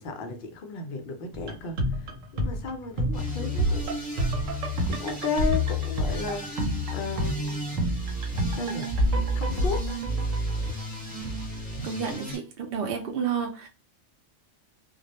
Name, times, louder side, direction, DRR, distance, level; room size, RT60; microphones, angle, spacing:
voice 1, 0.0-4.0 4.9-7.6 8.5-8.9 9.3-9.9, left 4 dB, 60° left, 0.6 m, -34 dB
sound 1, 1.3-11.3 11.5-11.6, equal, 85° right, 1.0 m, -30 dB
sound 2, 3.1-12.4, left 1 dB, 20° left, 0.8 m, -32 dB
voice 2, 11.8-13.7, right 7 dB, 60° right, 0.7 m, -30 dB
2.2 x 2.0 x 2.8 m
omnidirectional pair, 1.3 m